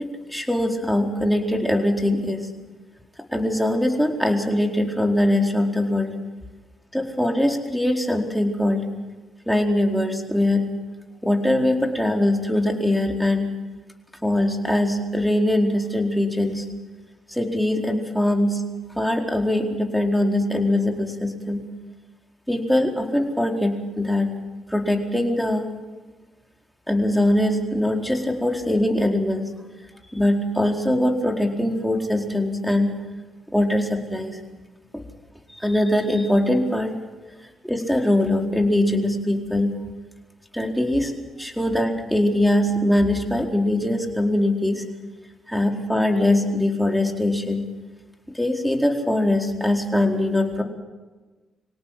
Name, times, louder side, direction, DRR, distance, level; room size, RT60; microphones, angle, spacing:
voice 1, 0.0-2.5 3.3-6.1 6.9-8.9 9.5-10.7 11.2-13.5 14.2-16.6 17.3-18.6 19.0-21.7 22.5-24.3 24.7-25.6 26.9-29.5 30.1-33.0 33.5-34.4 34.9-35.0 35.5-37.0 37.6-39.8 40.5-41.1 41.4-44.8 45.5-47.6 48.3-50.6, left 1 dB, ahead, 2 dB, 4.4 m, -22 dB
25.5 x 17.5 x 7.7 m, 1.2 s
cardioid pair, 75°, 0 cm